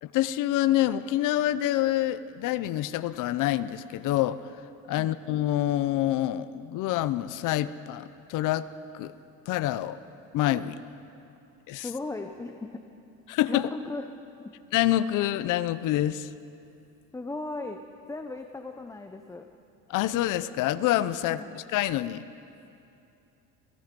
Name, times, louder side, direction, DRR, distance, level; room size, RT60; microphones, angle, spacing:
voice 1, 0.0-4.4 4.9-8.7 8.9-9.1 9.5-10.0 10.3-10.8 11.7-11.9 13.3-13.7 14.7-16.3 19.9-22.2, left 13 dB, 60° left, 15 dB, 0.7 m, -27 dB
voice 2, 11.8-12.8 13.5-14.0 14.4-14.5 17.1-17.8 18.1-19.5 21.3-21.5, left 2 dB, 10° left, 5 dB, 0.7 m, -36 dB
27.5 x 19.5 x 5.3 m, 2.7 s
cardioid pair, 140°, 34 cm